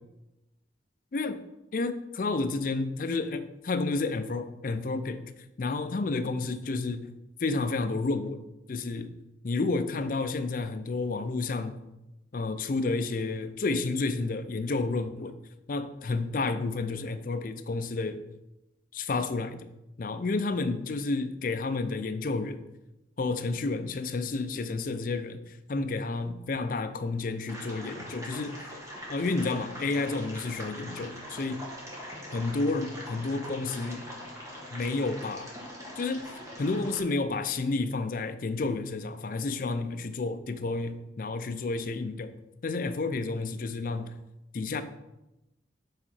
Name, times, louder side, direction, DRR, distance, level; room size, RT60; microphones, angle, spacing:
voice 1, 1.1-1.4 1.7-5.3 5.6-7.1 7.4-8.4 8.7-9.1 9.4-11.9 12.3-15.4 15.7-18.2 18.9-19.7 20.0-22.6 23.2-28.6 29.1-31.6 32.3-34.0 34.7-35.5 36.0-36.3 36.6-42.3 42.6-44.2 44.5-44.8, left 3 dB, 45° left, 10 dB, 0.4 m, -30 dB
sound 1, 27.5-37.0, equal, 15° right, 1.3 m, -42 dB
5.5 x 4.9 x 4.2 m, 0.94 s
head